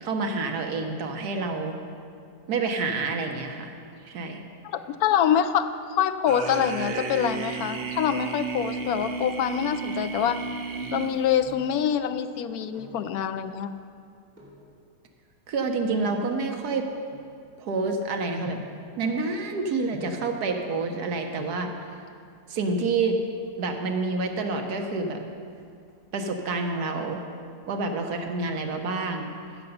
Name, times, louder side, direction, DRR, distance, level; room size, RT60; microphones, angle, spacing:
voice 1, 0.0-1.7 2.5-3.7 4.0-4.4 15.5-16.9 17.6-18.6 19.0-21.7 22.5-23.2 23.6-25.2 26.1-27.2 27.7-29.3, right 3 dB, 70° right, 4 dB, 1.4 m, -28 dB
voice 2, 4.6-10.4 10.9-13.7, left 9 dB, 70° left, 10 dB, 1.0 m, -25 dB
sound 1, 6.3-11.5, right 5 dB, 50° right, 0.8 m, -33 dB
sound 2, 11.4-11.8 12.5-13.1 14.3-14.7 15.4-17.8 18.4-18.8 19.9-20.3 21.1-21.2 21.4-21.7 22.8-23.4 23.7-23.8 24.0-24.1 24.5-24.9 25.2-26.3 26.7-27.1 27.5-28.6 28.9-29.0, right 2 dB, 35° right, 3.0 m, -49 dB
15.0 x 6.8 x 5.3 m, 2.3 s
omnidirectional pair, 1.8 m